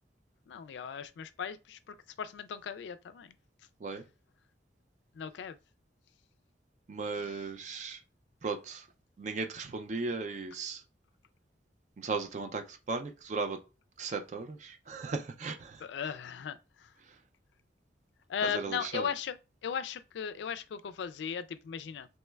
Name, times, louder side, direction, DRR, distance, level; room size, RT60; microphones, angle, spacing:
voice 1, 0.5-3.3 5.2-5.6 15.8-16.6 18.3-19.4 19.6-22.1, left 7 dB, 75° left, 0.3 m, -37 dB
voice 2, 6.9-8.0 8.4-8.9 9.2-10.8 12.0-13.6 14.0-15.9 17.0-17.2 18.4-19.1, right 4 dB, 40° right, 0.3 m, -36 dB
3.1 x 3.0 x 2.2 m
head